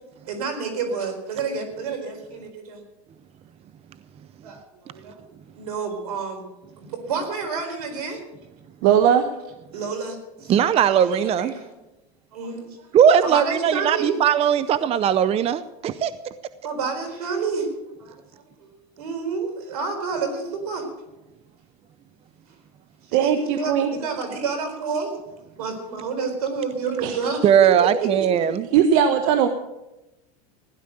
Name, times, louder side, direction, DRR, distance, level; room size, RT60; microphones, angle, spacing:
voice 1, 0.3-2.8 4.4-4.6 4.9-5.2 5.5-6.5 6.8-8.2 9.7-11.7 12.3-12.9 13.2-14.2 16.6-17.7 18.0-20.9 23.0-25.1 25.6-28.3, right 5 dB, 85° right, 6 dB, 4.4 m, -29 dB
voice 2, 8.8-9.3 23.1-23.9 27.0-27.2 28.7-29.5, right 8 dB, 65° right, 9 dB, 1.2 m, -18 dB
voice 3, 10.5-11.5 12.9-16.1 27.4-28.6, right 9 dB, 30° right, 14 dB, 0.7 m, -19 dB
16.0 x 11.0 x 6.7 m, 0.97 s
supercardioid pair, 115°, 19 cm